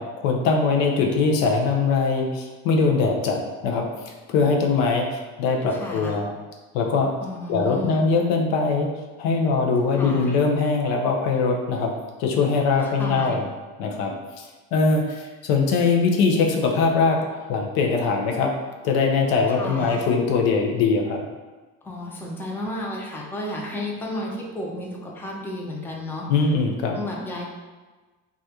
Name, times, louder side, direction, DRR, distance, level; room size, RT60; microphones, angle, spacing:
voice 1, 0.0-6.3 6.7-7.1 7.5-8.9 9.2-11.9 12.2-13.5 13.8-18.5 18.8-21.3 26.3-27.0, left 4 dB, 85° left, 1 dB, 0.5 m, -22 dB
voice 2, 5.7-6.2 7.2-8.1 9.9-10.3 12.8-13.4 19.6-20.0 21.8-26.3 26.9-27.5, left 1 dB, 5° left, -2 dB, 0.4 m, -32 dB
2.4 x 2.1 x 2.7 m, 1.3 s
supercardioid pair, 90°, 34 cm